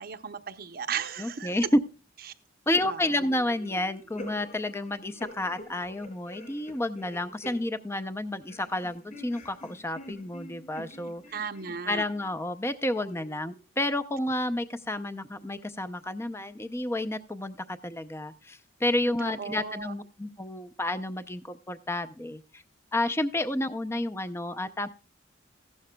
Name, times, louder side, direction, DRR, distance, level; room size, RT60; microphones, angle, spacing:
voice 1, 0.0-1.5 2.7-3.1 11.3-12.0 19.2-19.9, right 6 dB, 50° right, 7 dB, 0.7 m, -35 dB
voice 2, 1.2-1.8 2.7-11.2 11.9-22.6 22.9-24.9, left 1 dB, 15° left, 12 dB, 0.5 m, -30 dB
sound 1, 3.1-8.1 8.4-12.5 13.0-13.7, equal, 45° left, 5.3 m, -47 dB
15.5 x 11.5 x 2.2 m, 0.32 s
head